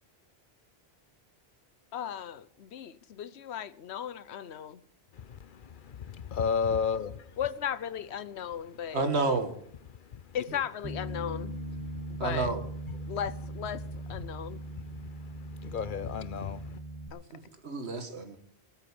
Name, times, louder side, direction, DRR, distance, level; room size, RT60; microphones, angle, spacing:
voice 1, 1.9-4.8 7.4-9.0 10.3-11.5 12.2-12.5 13.1-14.6 17.1-17.2, left 9 dB, 90° left, 1.1 m, -36 dB
voice 2, 5.1-7.4 9.9-10.6 11.8-12.2 13.0-13.2 14.1-16.8, left 6 dB, 55° left, 0.8 m, -35 dB
voice 3, 8.9-9.5 12.2-12.6 17.3-18.4, right 3 dB, 90° right, 2.0 m, -30 dB
Bass guitar, 10.8-17.1, right 1 dB, 20° right, 1.4 m, -40 dB
18.5 x 8.0 x 7.2 m
omnidirectional pair, 1.1 m